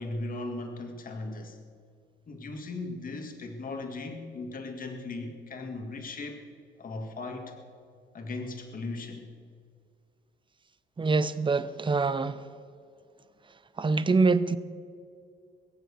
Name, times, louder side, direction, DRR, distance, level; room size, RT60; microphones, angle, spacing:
voice 1, 0.0-1.6 2.3-6.4 6.8-7.6 8.1-9.2, left 2 dB, 45° left, 4 dB, 1.9 m, -37 dB
voice 2, 11.0-12.4 13.8-14.6, right 4 dB, 25° right, 14 dB, 0.8 m, -25 dB
22.0 x 7.7 x 6.9 m, 2.1 s
cardioid pair, 90°, 20 cm